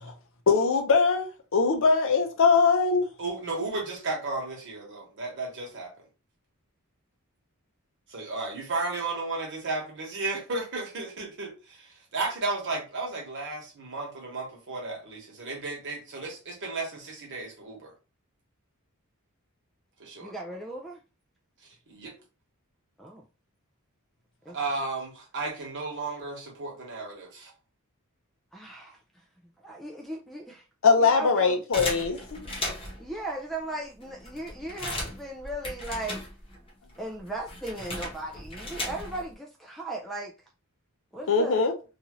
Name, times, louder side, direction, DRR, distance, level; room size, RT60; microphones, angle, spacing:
voice 1, 0.5-3.1 30.8-32.5 41.3-41.7, left 5 dB, 60° left, 0.6 m, -22 dB
voice 2, 3.2-5.9 8.1-17.9 20.0-20.3 21.9-22.1 24.5-27.5, right 3 dB, 55° right, 1.1 m, -34 dB
voice 3, 20.2-21.0 23.0-23.2 24.5-24.6 28.5-29.2 29.6-30.6 31.0-31.6 33.0-36.2 37.0-40.3 41.1-41.6, right 1 dB, ahead, 0.3 m, -37 dB
sound 1, 31.7-33.1 33.7-33.8 34.0-36.7 36.9-39.3, left 1 dB, 25° left, 1.0 m, -36 dB
2.7 x 2.4 x 2.9 m
head